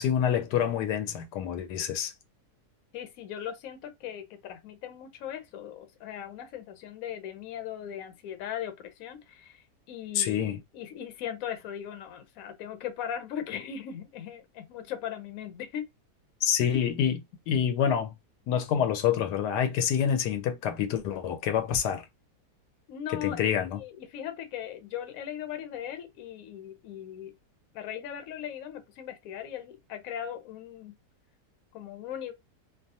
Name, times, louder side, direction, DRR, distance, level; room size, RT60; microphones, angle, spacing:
voice 1, 0.0-2.1 10.1-10.6 16.4-18.1 18.5-22.0 23.1-23.8, left 8 dB, 85° left, 1.2 m, -27 dB
voice 2, 2.9-10.5 10.7-15.9 22.9-23.4 23.8-27.3 27.7-30.9 31.7-32.3, left 9 dB, 65° left, 1.0 m, -38 dB
2.7 x 2.3 x 2.7 m
omnidirectional pair, 1.7 m